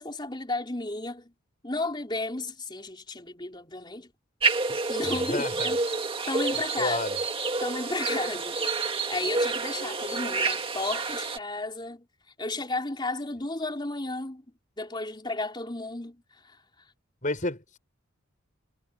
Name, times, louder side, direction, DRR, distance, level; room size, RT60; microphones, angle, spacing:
voice 1, 0.0-1.3 1.6-4.1 4.7-5.8 6.2-7.0 7.6-8.6 9.1-12.0 12.4-14.4 14.8-16.2 16.4-16.6, left 2 dB, 20° left, 3.9 m, -33 dB
sound 1, 4.4-11.4, right 3 dB, 25° right, 2.1 m, -29 dB
voice 2, 5.0-5.8 6.5-7.2 17.2-17.8, left 2 dB, 40° left, 6.4 m, -32 dB
head